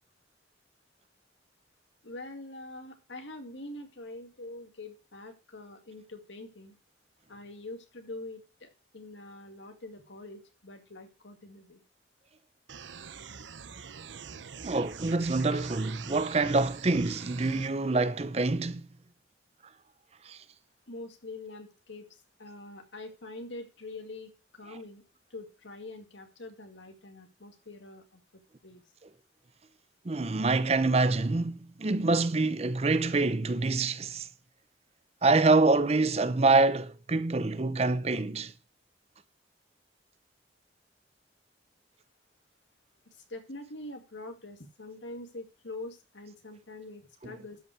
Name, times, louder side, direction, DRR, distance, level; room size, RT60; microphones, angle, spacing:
voice 1, 2.0-6.7 7.3-11.8 20.9-25.0 25.3-28.2 28.6-28.8 43.1-47.6, left 2 dB, 90° left, 2.3 m, -44 dB
sound 1, 12.7-17.7, right 7 dB, 90° right, 0.7 m, -44 dB
voice 2, 14.6-18.9 20.3-20.4 30.0-34.3 35.2-38.5 47.2-47.3, right 3 dB, 35° right, 0.6 m, -26 dB
12.5 x 5.6 x 4.8 m
head